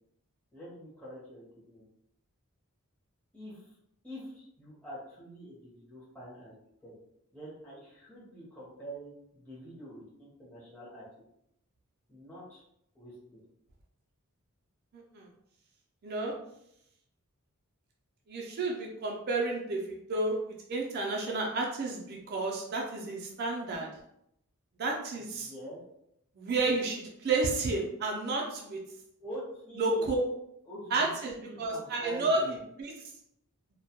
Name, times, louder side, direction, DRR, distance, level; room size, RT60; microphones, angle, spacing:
voice 1, 0.5-1.9 3.3-3.8 4.0-6.5 6.8-6.9 7.3-11.1 12.1-12.6 12.9-13.4 25.1-25.8 29.2-30.0 30.7-32.6, right 1 dB, 5° left, -9 dB, 0.7 m, -45 dB
voice 2, 16.0-16.3 18.3-23.9 24.8-25.5 26.4-28.8 29.8-30.2 30.9-32.4 32.8-32.9, right 3 dB, 45° right, -1 dB, 0.4 m, -31 dB
2.2 x 2.1 x 2.8 m, 0.76 s
head